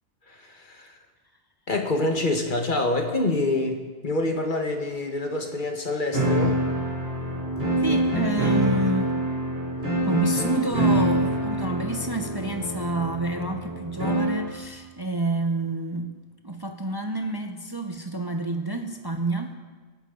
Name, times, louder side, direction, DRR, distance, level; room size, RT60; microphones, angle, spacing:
voice 1, 0.3-0.9 1.7-6.6, left 2 dB, 50° left, 3 dB, 1.6 m, -26 dB
sound 1, 6.1-14.5, right 1 dB, 50° right, 3.2 m, -25 dB
voice 2, 7.8-9.2 10.1-16.1 16.4-19.6, right 2 dB, 25° right, 4 dB, 0.7 m, -29 dB
24.5 x 10.0 x 3.9 m, 1.4 s
omnidirectional pair, 1.0 m